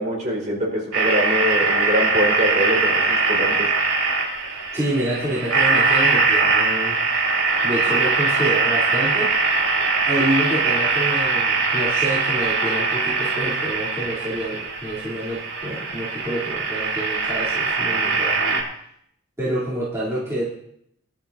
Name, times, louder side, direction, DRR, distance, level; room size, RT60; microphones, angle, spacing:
voice 1, 0.0-3.7, equal, 35° right, -3 dB, 4.6 m, -24 dB
sound 1, 0.9-18.6, right 4 dB, 75° right, 3.8 m, -21 dB
voice 2, 4.7-7.0 7.6-9.3 10.0-18.6 19.4-20.4, right 1 dB, 15° right, -10 dB, 3.3 m, -27 dB
21.0 x 12.0 x 2.8 m, 0.72 s
head